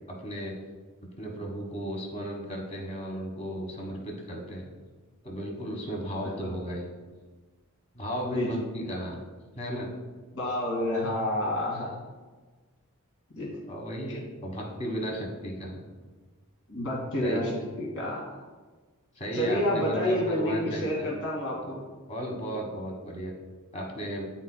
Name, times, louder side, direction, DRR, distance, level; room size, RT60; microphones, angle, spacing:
voice 1, 0.1-0.6 1.2-4.7 5.2-6.8 7.9-9.2 9.6-9.9 13.7-15.8 17.2-17.4 19.1-21.2 21.6-21.8 22.1-23.3 23.7-24.2, equal, 30° left, 0 dB, 1.3 m, -34 dB
voice 2, 10.3-11.9 13.3-13.5 16.7-18.3 19.3-21.8, left 1 dB, 70° left, -4 dB, 1.8 m, -29 dB
10.5 x 4.4 x 2.2 m, 1.3 s
head